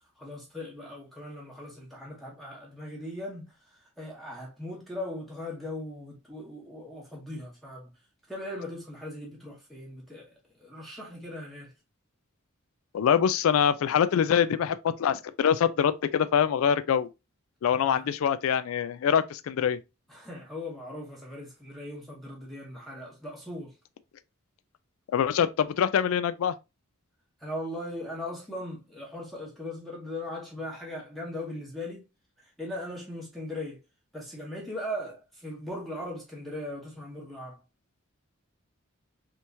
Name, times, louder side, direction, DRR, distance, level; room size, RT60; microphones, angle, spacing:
voice 1, 0.2-7.9 8.3-11.7 17.8-18.1 20.1-23.8 27.4-32.0 32.4-33.8 34.1-37.6, left 1 dB, ahead, 0.9 m, -39 dB
voice 2, 12.9-17.1 17.6-19.8 25.1-26.5, left 8 dB, 75° left, 0.3 m, -24 dB
3.4 x 2.9 x 2.6 m
head